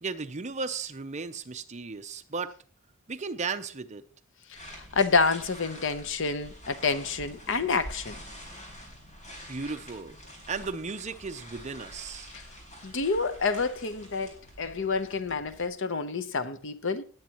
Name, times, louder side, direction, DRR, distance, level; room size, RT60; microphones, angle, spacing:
voice 1, 0.0-2.5 3.1-4.0 9.5-10.2 10.5-12.3, right 4 dB, 35° right, 0.7 m, -35 dB
voice 2, 4.5-8.2 12.3-12.4 12.8-17.0, left 4 dB, 65° left, 0.9 m, -28 dB
sound 1, 4.5-15.7, equal, 35° left, 4.5 m, -47 dB
18.5 x 8.5 x 3.0 m
head